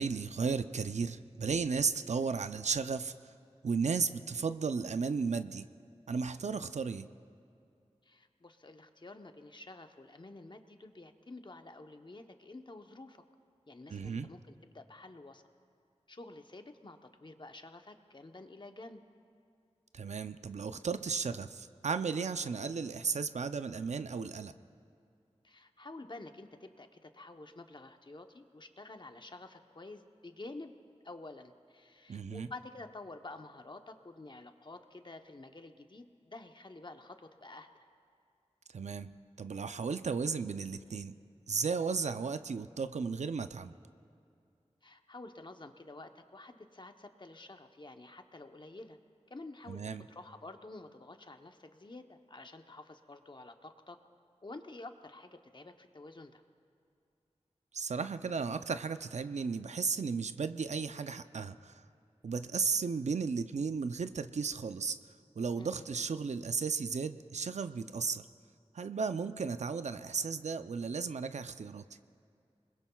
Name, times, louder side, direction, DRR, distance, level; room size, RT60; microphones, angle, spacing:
voice 1, 0.0-3.3 3.6-5.7 6.1-7.1 13.9-14.3 19.9-24.5 32.1-32.5 38.7-41.2 41.5-43.7 49.7-50.0 57.7-61.7 62.2-65.0 65.4-68.3 68.7-71.8, right 5 dB, 80° right, 11 dB, 0.5 m, -34 dB
voice 2, 8.0-13.2 13.7-15.4 16.1-19.0 25.4-30.7 31.0-37.7 44.8-49.0 49.3-54.0 54.4-56.4 65.5-65.9, left 2 dB, 40° left, 6 dB, 0.9 m, -50 dB
27.5 x 21.0 x 2.3 m, 2.4 s
wide cardioid pair, 60°, 12 cm